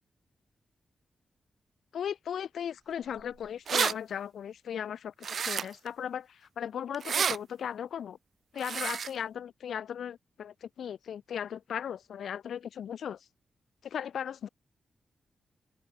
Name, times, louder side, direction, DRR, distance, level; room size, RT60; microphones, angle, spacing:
voice 1, 1.9-8.2 8.5-13.2 13.8-14.5, left 8 dB, 85° left, 7.6 m, -37 dB
sound 1, 3.2-3.3 3.5-3.9 5.2-5.9 6.9-7.4 8.6-9.1, right 7 dB, 60° right, 3.1 m, -29 dB
open air
wide cardioid pair, 150°, 0 cm